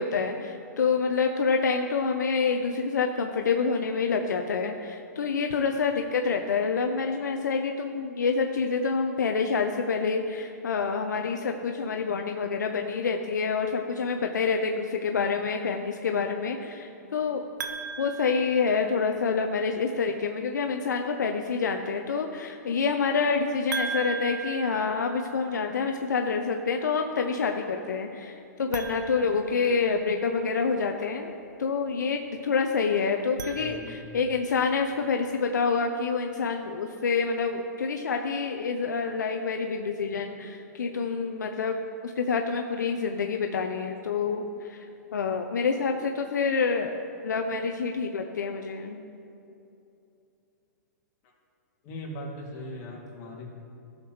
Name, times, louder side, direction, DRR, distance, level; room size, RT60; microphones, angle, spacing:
voice 1, 0.0-17.4 18.0-31.3 31.6-44.8 45.1-49.0, left 5 dB, 85° left, 4 dB, 0.6 m, -27 dB
sound 1, 17.6-19.3 23.7-25.7 28.6-30.2 33.1-34.4, right 5 dB, 80° right, 0.8 m, -38 dB
voice 2, 33.6-34.0 51.8-53.5, left 1 dB, 40° left, -3 dB, 2.3 m, -39 dB
15.0 x 6.5 x 3.1 m, 2.7 s
hypercardioid pair, 125°, 10 cm